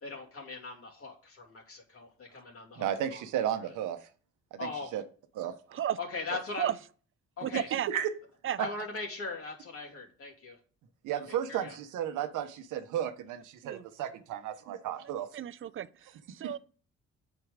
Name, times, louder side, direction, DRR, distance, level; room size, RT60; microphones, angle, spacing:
voice 1, 0.0-2.9 3.1-3.2 4.6-4.9 6.0-6.7 7.4-7.7 8.6-10.6 11.3-11.7, left 3 dB, 50° left, 2.7 m, -39 dB
voice 2, 2.8-4.1 4.5-5.0 5.3-5.5 7.9-8.1 8.6-8.7 11.0-15.3 16.4-16.5, right 10 dB, 90° right, 1.0 m, -33 dB
voice 3, 7.4-7.9 8.4-8.6 13.6-13.8 15.3-16.6, right 10 dB, 45° right, 0.5 m, -33 dB
8.0 x 4.6 x 5.0 m
cardioid pair, 90°, 30 cm